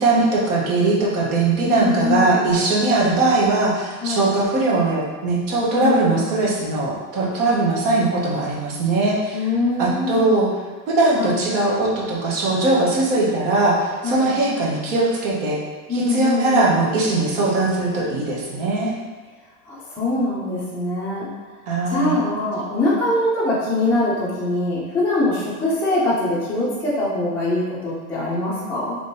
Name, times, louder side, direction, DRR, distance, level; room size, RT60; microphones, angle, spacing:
voice 1, 0.0-9.4 9.8-10.5 10.9-15.6 15.9-18.9 21.7-22.2, right 2 dB, 65° right, -4 dB, 1.1 m, -20 dB
voice 2, 1.6-2.5 4.0-4.3 5.8-6.4 9.3-10.3 11.2-11.5 14.0-14.3 15.9-16.8 19.6-21.3 21.9-29.0, left 2 dB, 5° left, -10 dB, 0.4 m, -23 dB
3.4 x 3.3 x 2.7 m, 1.4 s
supercardioid pair, 140°, 42 cm